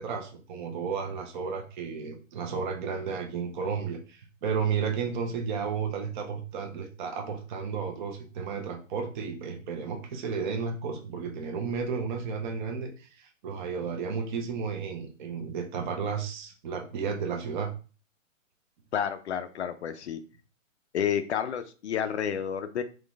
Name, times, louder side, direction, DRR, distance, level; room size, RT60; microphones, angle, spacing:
voice 1, 0.0-17.7, right 6 dB, 35° right, 2 dB, 0.9 m, -33 dB
voice 2, 18.9-20.2 20.9-22.8, left 8 dB, 55° left, 9 dB, 0.6 m, -30 dB
3.8 x 3.2 x 3.5 m, 0.35 s
hypercardioid pair, 140°, 40 cm